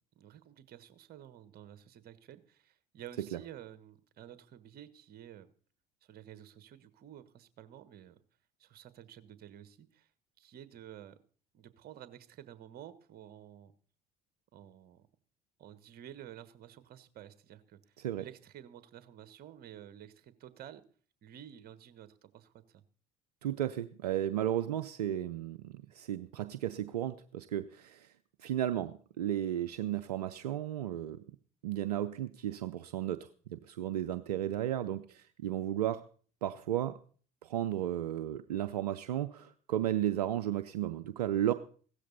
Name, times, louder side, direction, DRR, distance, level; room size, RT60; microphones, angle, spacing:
voice 1, 0.1-5.5 6.0-8.2 8.6-10.1 10.4-11.2 11.5-13.7 14.5-15.1 15.6-20.8 21.2-22.8, right 11 dB, 50° right, 14 dB, 1.4 m, -51 dB
voice 2, 23.4-28.1 28.4-31.2 31.6-36.1 36.4-37.0 37.4-41.5, right 12 dB, 80° right, 12 dB, 0.6 m, -34 dB
16.5 x 13.5 x 4.1 m, 0.43 s
hypercardioid pair, 65°, 20 cm